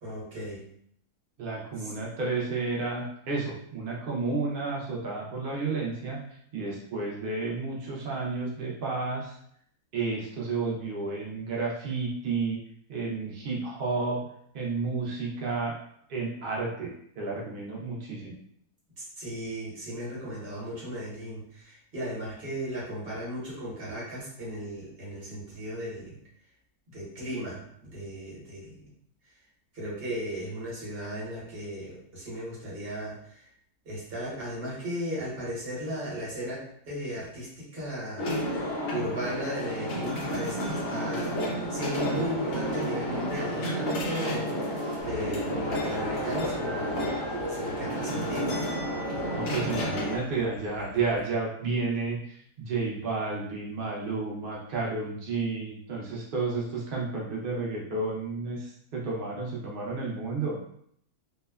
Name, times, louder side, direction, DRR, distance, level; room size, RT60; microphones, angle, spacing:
voice 1, 0.0-0.7 1.8-1.9 19.2-26.2 26.9-28.8 29.7-33.5 33.8-38.3 38.6-44.7 45.0-47.1 47.5-48.6, equal, 40° right, -6 dB, 1.1 m, -36 dB
voice 2, 1.4-6.2 6.5-9.3 9.9-12.6 12.9-14.2 14.5-15.7 16.1-18.4 49.3-60.6, right 3 dB, 80° right, -3 dB, 0.4 m, -31 dB
sound 1, 38.2-50.2, equal, 65° left, 1.0 m, -31 dB
sound 2, 45.0-51.3, equal, 65° right, 1.1 m, -47 dB
2.7 x 2.1 x 2.2 m, 0.68 s
omnidirectional pair, 1.6 m